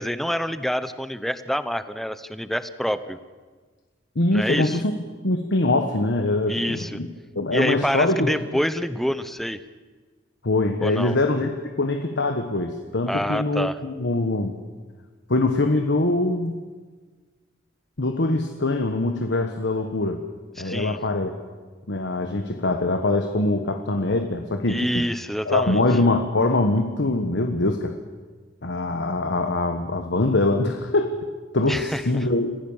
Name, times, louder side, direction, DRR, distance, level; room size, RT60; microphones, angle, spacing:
voice 1, 0.0-3.2 4.3-4.8 6.5-7.0 7.5-9.6 10.8-11.1 13.1-13.8 20.6-21.0 24.7-25.8 31.7-32.2, equal, ahead, 13 dB, 0.8 m, -27 dB
voice 2, 4.1-4.9 5.2-7.1 7.3-8.3 10.4-11.5 11.8-14.5 15.3-16.6 18.0-20.2 20.6-21.3 21.9-25.1 25.4-27.9 28.6-31.1 31.5-32.5, left 2 dB, 65° left, 6 dB, 1.3 m, -23 dB
26.5 x 15.5 x 7.2 m, 1.4 s
head